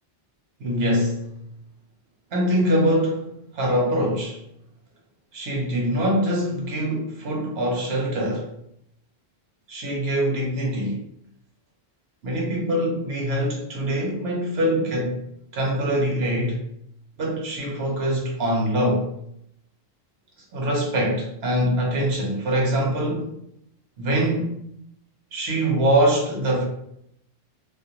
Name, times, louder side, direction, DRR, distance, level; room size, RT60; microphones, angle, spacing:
voice 1, 0.6-1.3 2.3-4.4 5.3-8.5 9.7-11.0 12.2-15.2 15.5-16.6 17.2-19.1 20.5-23.3 24.0-24.6 25.3-26.6, equal, 75° right, -2 dB, 0.9 m, -23 dB
2.4 x 2.1 x 2.7 m, 0.76 s
omnidirectional pair, 1.1 m